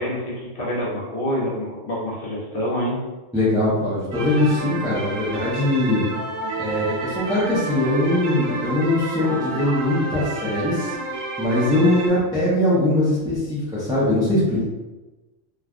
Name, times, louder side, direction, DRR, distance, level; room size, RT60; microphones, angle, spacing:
voice 1, 0.0-3.0, equal, 50° left, -6 dB, 0.8 m, -27 dB
voice 2, 3.3-6.0 6.6-10.9 11.4-14.6, left 1 dB, 5° right, -8 dB, 0.5 m, -21 dB
sound 1, 4.1-12.1, right 3 dB, 85° right, 1.0 m, -30 dB
3.2 x 2.2 x 2.4 m, 1.1 s
omnidirectional pair, 1.3 m